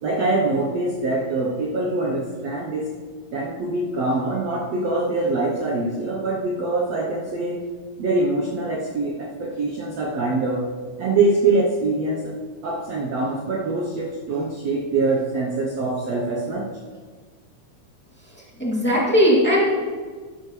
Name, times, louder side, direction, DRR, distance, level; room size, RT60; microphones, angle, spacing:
voice 1, 0.0-2.9 3.3-7.6 8.0-10.7 11.0-16.7, right 2 dB, 75° right, -2 dB, 1.5 m, -24 dB
voice 2, 18.6-19.6, equal, 5° left, -5 dB, 1.5 m, -18 dB
12.0 x 11.5 x 3.3 m, 1.5 s
omnidirectional pair, 4.4 m